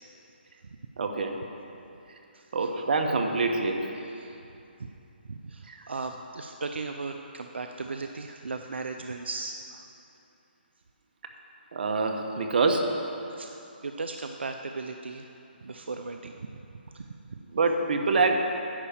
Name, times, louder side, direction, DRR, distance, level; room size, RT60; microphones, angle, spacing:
voice 1, 1.0-1.3 2.5-3.9 5.7-5.8 11.7-12.8 17.5-18.4, right 3 dB, 60° right, 4 dB, 1.0 m, -25 dB
voice 2, 2.3-2.7 4.0-4.4 4.8-4.9 5.3-9.9 13.3-15.3 15.6-16.3 16.9-17.1, right 3 dB, 90° right, 5 dB, 0.5 m, -37 dB
10.0 x 4.9 x 7.2 m, 2.8 s
hypercardioid pair, 155°, 6 cm